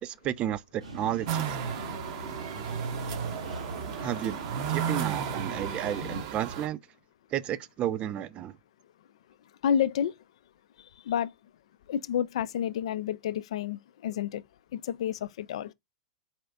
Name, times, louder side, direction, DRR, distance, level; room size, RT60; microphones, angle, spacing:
voice 1, 0.0-1.6 4.0-6.8 7.3-8.5, right 11 dB, 35° right, 0.4 m, -32 dB
sound 1, 0.8-6.2, right 1 dB, 90° right, 1.3 m, -40 dB
sound 2, 1.3-6.7, right 8 dB, 55° right, 0.8 m, -34 dB
voice 2, 9.6-10.1 11.1-11.3 11.9-14.4 14.7-15.7, left 9 dB, 65° left, 0.4 m, -29 dB
4.2 x 2.4 x 3.5 m
hypercardioid pair, 100°, 3 cm